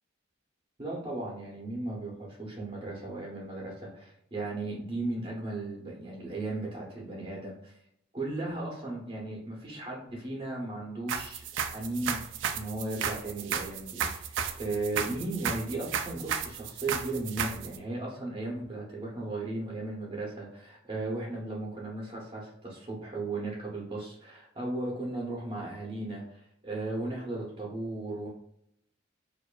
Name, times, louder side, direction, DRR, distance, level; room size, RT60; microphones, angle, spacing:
voice 1, 0.8-7.7 8.1-11.4 11.7-28.3, right 2 dB, 25° right, -4 dB, 0.7 m, -36 dB
sound 1, 11.1-17.8, right 7 dB, 70° right, 0.3 m, -33 dB
4.5 x 2.5 x 2.3 m, 0.76 s
head